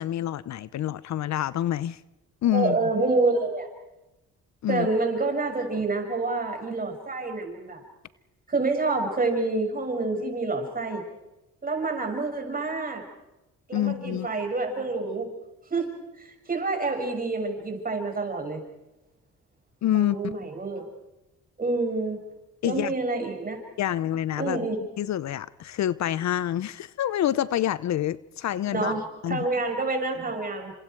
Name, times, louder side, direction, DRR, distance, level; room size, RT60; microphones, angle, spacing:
voice 1, 0.0-2.0 2.4-2.8 4.6-4.9 13.7-14.3 19.8-20.2 22.6-22.9 23.8-24.7 25.0-28.9 29.2-29.5, left 12 dB, 65° left, 18 dB, 0.8 m, -27 dB
voice 2, 2.5-3.7 4.7-7.8 8.5-11.0 11.6-13.0 13.7-15.3 15.7-18.6 19.9-20.9 21.6-22.2 22.6-23.6 24.4-24.8 28.7-30.7, right 3 dB, 30° right, 3 dB, 6.6 m, -28 dB
29.5 x 26.5 x 4.7 m, 0.97 s
cardioid pair, 90°, 30 cm